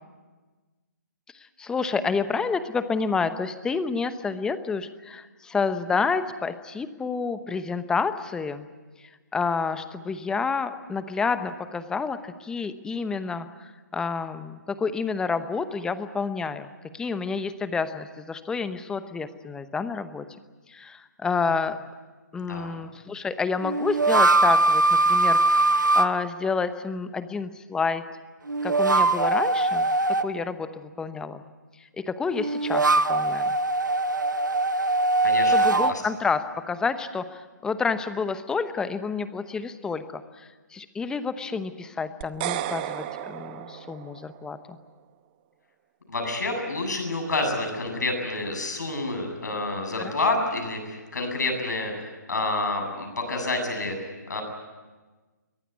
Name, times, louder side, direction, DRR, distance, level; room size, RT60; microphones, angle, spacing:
voice 1, 1.3-8.7 9.0-16.7 16.9-20.2 20.7-21.8 22.3-28.0 28.6-29.9 30.2-31.4 32.1-33.6 35.5-44.8 50.0-50.1, left 5 dB, 5° left, 12 dB, 0.9 m, -29 dB
sound 1, 21.5-21.6 23.6-26.1 28.5-30.3 32.3-36.0, right 2 dB, 85° right, 1.1 m, -21 dB
voice 2, 22.3-22.8 35.2-36.0 46.1-54.0 54.3-54.4, left 2 dB, 70° left, 3 dB, 7.9 m, -28 dB
sound 2, 42.2-44.5, right 13 dB, 30° right, 1.0 m, -33 dB
23.0 x 18.5 x 9.6 m, 1.3 s
figure-of-eight pair, 140°, 10 cm